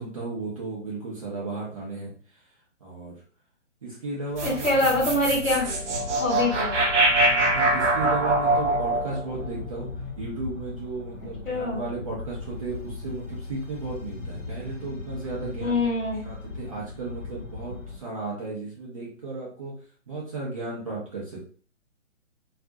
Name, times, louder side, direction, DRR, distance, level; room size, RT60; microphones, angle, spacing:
voice 1, 0.0-2.1 2.8-3.2 3.8-4.9 7.5-9.9 10.2-15.9 16.2-19.7 20.1-21.4, right 3 dB, 25° right, -6 dB, 0.5 m, -34 dB
sound 1, 4.3-18.0, left 4 dB, 40° left, 0.7 m, -39 dB
voice 2, 4.4-5.7 6.2-6.8 11.5-11.8 15.6-16.2, left 2 dB, 85° left, -3 dB, 1.0 m, -24 dB
sound 2, 4.4-10.7, right 2 dB, 60° right, 0.8 m, -24 dB
2.3 x 2.0 x 2.6 m, 0.43 s
figure-of-eight pair, 135°, 39 cm